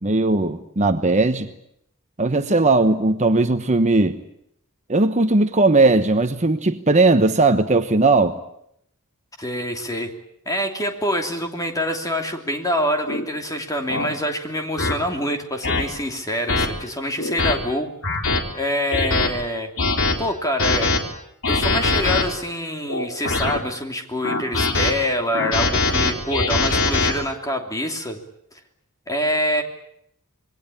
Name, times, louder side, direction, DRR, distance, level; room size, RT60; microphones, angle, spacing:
voice 1, 0.0-1.5 2.2-4.2 4.9-8.4, right 2 dB, 30° right, 8 dB, 1.1 m, -18 dB
voice 2, 9.4-10.1 10.4-17.9 18.5-19.7 20.2-21.0 21.5-28.2 29.1-29.6, equal, 15° left, 4 dB, 3.0 m, -25 dB
sound 1, 13.1-13.2 13.9-14.1 14.8-14.9 15.6-15.8 16.5-16.7 17.2-17.5 18.0-18.4 18.9-19.3 19.8-20.1 20.6-21.0 21.4-22.2 22.9-23.6 24.2-24.9 25.3-27.1, left 3 dB, 60° left, 3.9 m, -21 dB
27.0 x 22.0 x 8.6 m, 0.73 s
head